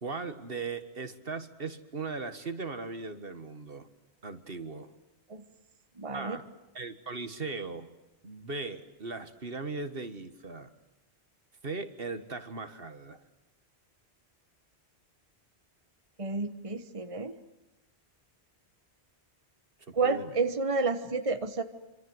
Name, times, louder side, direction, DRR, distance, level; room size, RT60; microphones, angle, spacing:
voice 1, 0.0-3.9 4.2-4.9 6.1-6.4 6.7-7.9 8.2-10.7 11.6-13.2 19.9-20.3, right 4 dB, 55° right, 9 dB, 1.9 m, -38 dB
voice 2, 5.9-6.4 16.2-17.4 19.9-21.6, right 3 dB, 30° right, 8 dB, 1.3 m, -30 dB
26.5 x 26.5 x 8.0 m, 0.98 s
omnidirectional pair, 1.1 m